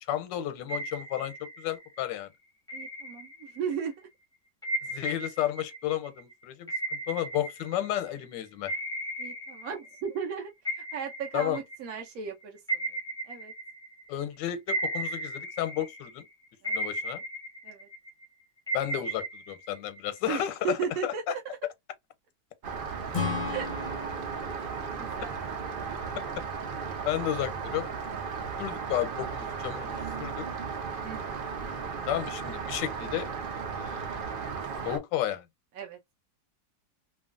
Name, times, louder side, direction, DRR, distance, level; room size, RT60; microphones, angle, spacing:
voice 1, 0.1-2.3 4.9-6.7 7.1-8.7 11.3-11.6 14.1-16.2 16.7-17.2 18.7-20.8 21.0-21.1 27.0-27.9 28.6-30.4 32.1-33.3 33.7-34.3 34.8-35.4, left 12 dB, 90° left, 1.3 m, -32 dB
sound 1, 0.7-2.0 2.7-3.8 4.6-8.2 8.7-10.3 10.6-14.2 14.7-16.2 16.6-18.2 18.7-20.4, right 2 dB, 5° left, 0.6 m, -36 dB
voice 2, 2.7-4.1 9.2-12.6 13.3-13.5 16.6-16.9 17.6-17.9 20.3-21.4 23.4-24.0 24.5-25.3 31.0-31.4 35.7-36.0, right 7 dB, 65° right, 1.0 m, -36 dB
Rain, 22.6-35.0, right 5 dB, 90° right, 0.4 m, -35 dB
Acoustic guitar / Strum, 23.1-26.7, left 4 dB, 65° left, 0.4 m, -37 dB
3.0 x 2.3 x 2.4 m
omnidirectional pair, 1.9 m